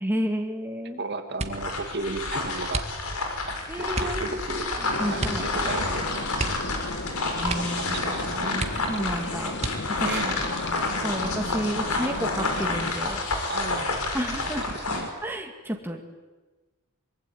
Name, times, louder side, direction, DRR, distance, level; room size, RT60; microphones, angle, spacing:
voice 1, 0.0-1.0 3.7-4.7 5.0-5.4 7.4-9.6 10.0-10.2 11.0-13.2 14.1-14.7 15.2-16.0, equal, 10° right, 2 dB, 2.2 m, -31 dB
voice 2, 1.0-2.8 3.8-4.7 5.1-6.1 7.6-7.7 7.9-8.7 10.0-10.4 13.5-13.9 14.5-15.1, right 3 dB, 50° right, 6 dB, 2.7 m, -34 dB
sound 1, 1.3-1.8 2.7-3.3 3.9-4.2 5.2-5.5 5.8-5.9 6.3-7.1 7.4-7.9 8.2-8.3 8.6-9.1 9.6-10.1 10.8-11.4 11.8-12.2, right 2 dB, 30° right, 1.9 m, -33 dB
sound 2, 1.4-15.1, left 2 dB, 75° left, 5.5 m, -30 dB
sound 3, 4.8-12.9, left 2 dB, 55° left, 2.2 m, -35 dB
24.0 x 23.5 x 9.6 m, 1.2 s
head